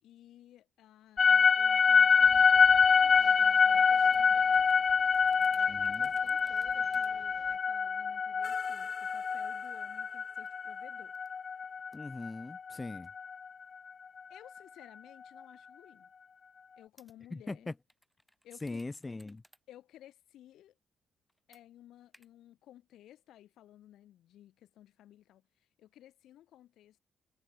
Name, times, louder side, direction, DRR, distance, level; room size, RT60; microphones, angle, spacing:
voice 1, 0.0-11.1 14.3-16.1 16.8-17.7 18.4-18.8 19.7-20.8 21.5-27.0, left 12 dB, 75° left, 2.4 m, -57 dB
sound 1, 1.2-13.3, left 5 dB, 40° left, 0.3 m, -26 dB
sound 2, 2.2-7.6, right 3 dB, 25° right, 2.1 m, -58 dB
sound 3, 4.1-7.1 7.5-7.6 8.1-8.2 9.3-9.8 10.4-10.5 11.1-13.1 13.5-13.6 14.4-14.6 15.6-15.7 17.0-17.1 17.9-19.6 19.9-20.0 21.3-21.6 22.1-22.3, equal, ahead, 6.4 m, -66 dB
voice 2, 5.7-6.1 11.9-13.1 17.3-17.7 18.6-19.4, left 3 dB, 20° left, 2.2 m, -40 dB
cardioid pair, 85°, 0 cm